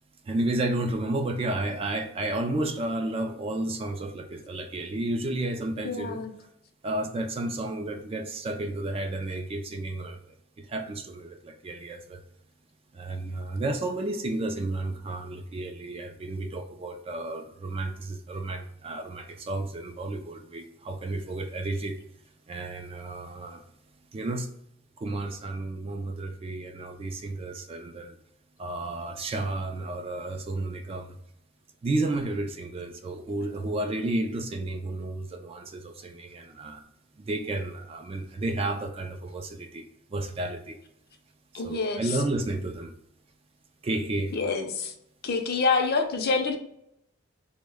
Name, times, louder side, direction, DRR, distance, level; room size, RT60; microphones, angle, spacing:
voice 1, 0.3-6.2 6.8-10.2 10.6-12.2 12.9-22.0 22.5-23.6 24.1-24.5 25.0-28.2 28.6-31.1 31.8-36.8 37.2-39.8 40.1-40.8 41.6-42.9 43.8-44.3, right 2 dB, 30° right, 0.3 m, -32 dB
voice 2, 5.8-6.3 41.5-42.2 44.3-44.9 45.2-46.6, left 4 dB, 50° left, 0.5 m, -27 dB
3.7 x 2.1 x 3.4 m
head